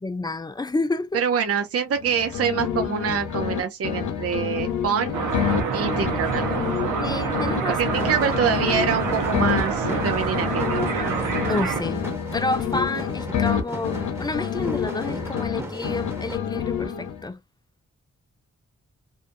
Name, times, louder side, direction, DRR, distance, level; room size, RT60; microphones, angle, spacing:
voice 1, 0.0-1.2 7.0-7.8 11.5-12.0 12.3-17.4, left 2 dB, 15° left, 0.5 m, -29 dB
voice 2, 1.1-5.2 5.7-6.5 7.7-10.8, right 7 dB, 50° right, 0.6 m, -25 dB
sound 1, 1.9-3.6 3.8-7.6 7.8-11.6 11.8-15.6 15.8-17.3, left 8 dB, 80° left, 0.7 m, -28 dB
sound 2, 5.1-11.8, right 5 dB, 85° right, 0.8 m, -27 dB
sound 3, 7.8-16.4, right 1 dB, 10° right, 1.0 m, -36 dB
2.5 x 2.5 x 2.5 m
supercardioid pair, 40°, 30 cm